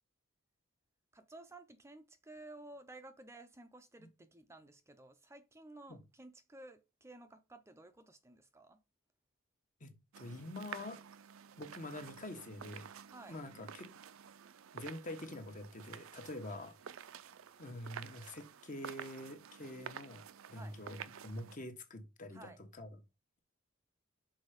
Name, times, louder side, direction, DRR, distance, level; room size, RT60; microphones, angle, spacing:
voice 1, 1.1-8.8 13.1-13.4 20.5-20.8 22.3-22.6, right 2 dB, 15° right, 0.5 m, -54 dB
voice 2, 9.8-11.0 11.6-12.9 13.3-13.9 14.7-16.7 17.6-20.2 20.5-23.0, left 1 dB, 40° left, 1.3 m, -46 dB
sound 1, 10.1-21.6, right 8 dB, 65° right, 0.5 m, -51 dB
6.3 x 4.4 x 5.1 m
head